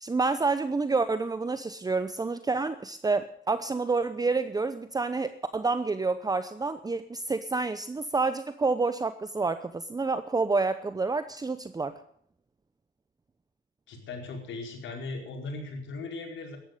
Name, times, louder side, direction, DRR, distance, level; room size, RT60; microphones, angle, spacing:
voice 1, 0.0-11.9, right 3 dB, 20° right, 11 dB, 0.8 m, -28 dB
voice 2, 13.9-16.6, left 3 dB, 75° left, 1 dB, 4.8 m, -38 dB
14.0 x 11.0 x 8.9 m, 0.65 s
cardioid pair, 90°, 20 cm